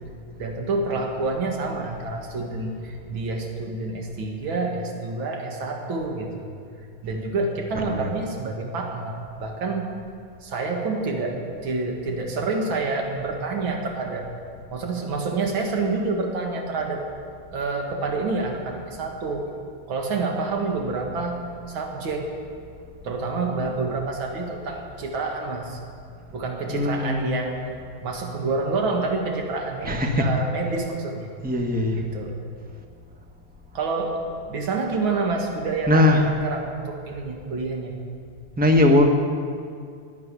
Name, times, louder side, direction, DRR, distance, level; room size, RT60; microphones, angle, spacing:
voice 1, 0.4-6.5 7.0-9.9 10.4-14.2 14.7-17.0 17.5-19.5 19.9-21.4 21.7-22.4 23.0-25.8 26.3-27.6 28.0-31.3 31.9-32.4 33.7-37.9, right 3 dB, 70° right, 1 dB, 2.5 m, -28 dB
voice 2, 7.7-8.2 26.7-27.3 29.8-30.3 31.4-32.0 35.9-36.3 38.6-39.1, left 1 dB, 5° right, 3 dB, 0.8 m, -20 dB
12.5 x 11.0 x 9.6 m, 2.3 s
omnidirectional pair, 2.3 m